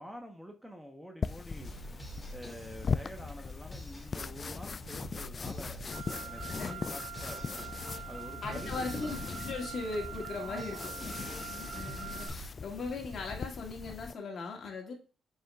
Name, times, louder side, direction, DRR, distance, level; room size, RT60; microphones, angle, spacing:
voice 1, 0.0-1.7 2.3-5.8 6.2-7.6 8.1-9.2 10.3-11.1, equal, 5° right, 3 dB, 1.0 m, -47 dB
sound 1, 1.2-14.1, left 5 dB, 40° left, 0.3 m, -40 dB
sound 2, 1.6-12.5, equal, 10° left, 2.5 m, -47 dB
Car, 5.9-12.3, right 8 dB, 50° right, 3.5 m, -44 dB
voice 2, 8.4-14.9, left 3 dB, 55° left, 1 dB, 2.2 m, -39 dB
7.3 x 5.5 x 2.4 m, 0.36 s
cardioid pair, 90°, 0 cm